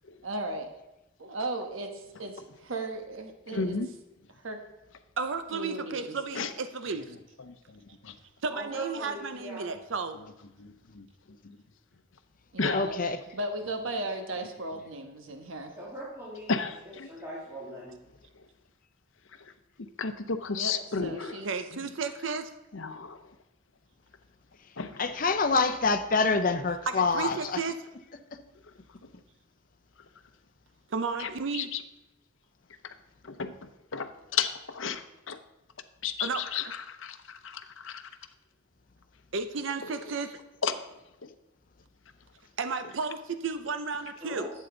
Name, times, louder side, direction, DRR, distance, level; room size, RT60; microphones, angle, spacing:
voice 1, 0.2-0.7 1.2-3.8 4.4-4.6 5.5-6.2 12.5-13.0 13.3-15.8 20.6-20.7 21.0-21.5, right 2 dB, 85° right, 5 dB, 1.3 m, -36 dB
voice 2, 3.5-3.9 6.3-6.5 7.4-8.1 10.6-11.1 11.4-11.6 12.6-12.8 16.5-17.1 19.4-19.5 20.0-21.4 22.7-23.2 24.8-25.0 31.2-31.8 32.8-32.9 33.2-35.4 36.0-38.0 39.8-40.0 40.6-40.8 41.2-41.3, left 5 dB, 75° left, 10 dB, 0.7 m, -33 dB
voice 3, 5.2-7.0 8.4-10.2 21.4-22.5 26.9-27.8 30.9-31.7 36.2-36.4 39.3-40.4 42.6-44.5, right 4 dB, 70° right, 9 dB, 0.6 m, -33 dB
voice 4, 8.5-9.7 15.8-18.0 44.2-44.5, right 1 dB, 15° right, -8 dB, 1.9 m, -40 dB
voice 5, 12.7-13.2 25.0-27.6 28.3-28.4, left 4 dB, 45° left, 9 dB, 0.7 m, -26 dB
11.5 x 8.3 x 3.9 m, 0.93 s
head